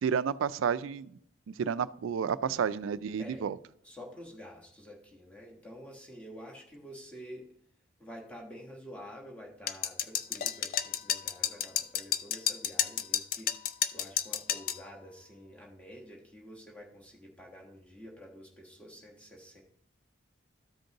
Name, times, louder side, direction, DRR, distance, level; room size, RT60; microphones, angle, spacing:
voice 1, 0.0-1.1 1.5-3.6, right 7 dB, 80° right, 16 dB, 0.3 m, -31 dB
voice 2, 3.8-7.5 8.0-19.6, equal, 5° left, -2 dB, 1.3 m, -49 dB
sound 1, 9.7-14.8, left 10 dB, 45° left, 0.4 m, -31 dB
13.5 x 5.2 x 2.9 m, 0.70 s
head